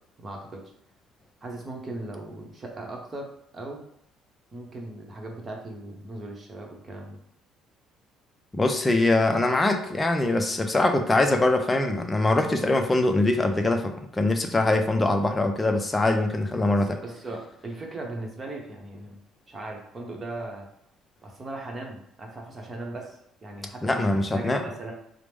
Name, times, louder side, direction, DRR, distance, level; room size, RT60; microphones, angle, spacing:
voice 1, 0.2-0.6 1.4-3.8 4.5-7.2 16.8-19.2 19.5-20.7 21.2-24.9, right 2 dB, 25° right, 0 dB, 0.9 m, -38 dB
voice 2, 8.5-16.9 23.8-24.6, left 2 dB, 15° left, 4 dB, 0.5 m, -23 dB
4.7 x 2.1 x 3.4 m, 0.73 s
cardioid pair, 110°, 0 cm